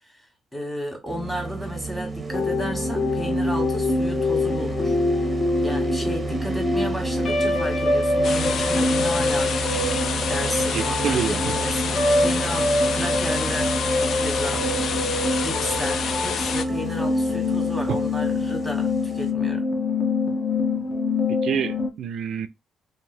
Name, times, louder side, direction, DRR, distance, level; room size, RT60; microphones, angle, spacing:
voice 1, 0.5-5.0 5.6-9.8 10.3-13.9 14.1-15.0 15.4-19.7, equal, 5° left, 1.5 m, -33 dB
sound 1, 1.1-19.3, right 4 dB, 30° right, 0.6 m, -32 dB
sound 2, 2.3-21.9, left 2 dB, 40° left, 1.1 m, -25 dB
sound 3, 8.2-16.6, left 6 dB, 60° left, 0.4 m, -28 dB
voice 2, 10.7-11.6 17.9-18.0 21.4-22.5, right 8 dB, 70° right, 0.3 m, -27 dB
2.8 x 2.4 x 2.7 m
cardioid pair, 90°, 0 cm